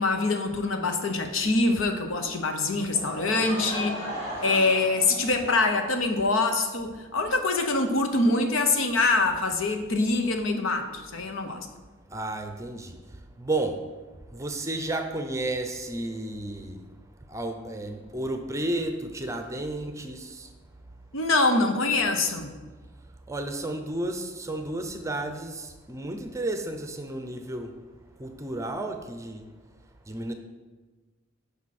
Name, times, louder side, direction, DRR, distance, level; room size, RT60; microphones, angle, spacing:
voice 1, 0.0-4.0 4.4-11.7 21.1-22.5, left 3 dB, 80° left, 5 dB, 1.0 m, -24 dB
Laughter / Crowd, 2.9-5.8, equal, 30° left, 2.2 m, -36 dB
voice 2, 12.1-13.0 13.4-13.8 14.3-16.8 17.3-20.5 23.3-27.7 28.2-29.5 30.1-30.3, right 2 dB, 15° right, 6 dB, 0.6 m, -32 dB
11.0 x 5.4 x 4.3 m, 1.3 s
head